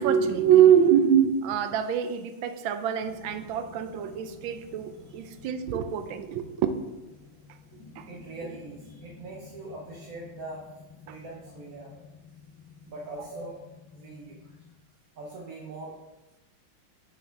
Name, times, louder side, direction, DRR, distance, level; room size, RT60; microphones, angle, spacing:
voice 1, 0.0-6.7 8.0-8.1 11.1-11.2, right 9 dB, 75° right, 10 dB, 1.3 m, -24 dB
sound 1, 3.0-14.7, left 4 dB, 60° left, 1.8 m, -51 dB
voice 2, 8.1-10.7 11.1-11.9 12.9-13.6 13.9-14.6 15.1-16.0, right 2 dB, 55° right, -3 dB, 1.2 m, -41 dB
6.0 x 5.8 x 4.5 m, 1.0 s
omnidirectional pair, 2.3 m